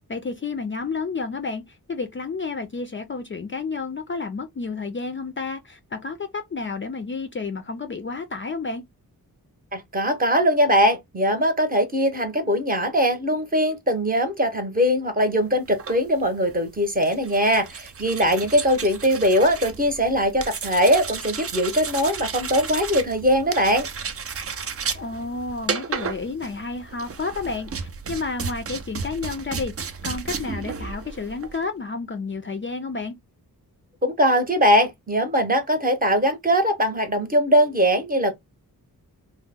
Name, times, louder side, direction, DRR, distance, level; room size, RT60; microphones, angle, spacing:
voice 1, 0.0-8.8 24.9-33.2, left 4 dB, 35° left, 0.4 m, -31 dB
voice 2, 9.7-23.9 34.0-38.3, equal, 25° right, 0.8 m, -21 dB
sound 1, 15.7-31.7, right 5 dB, 40° right, 0.5 m, -33 dB
2.9 x 2.0 x 3.4 m
wide cardioid pair, 95°, 37 cm